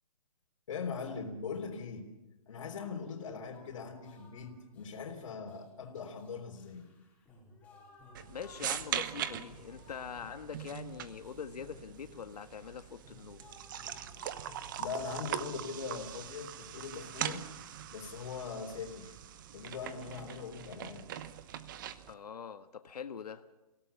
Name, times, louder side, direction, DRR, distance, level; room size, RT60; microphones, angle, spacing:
voice 1, 0.7-2.1 2.5-6.8 14.8-17.4 17.9-19.1 19.5-21.1, left 5 dB, 50° left, -2 dB, 3.7 m, -41 dB
sound 1, 3.5-19.3, left 2 dB, 5° left, 5.0 m, -58 dB
sound 2, 8.1-22.1, right 10 dB, 30° right, 1.0 m, -42 dB
voice 2, 8.3-13.4 22.1-23.4, left 7 dB, 80° left, 8 dB, 1.5 m, -44 dB
28.5 x 17.5 x 7.1 m, 1.1 s
hypercardioid pair, 165°, 20 cm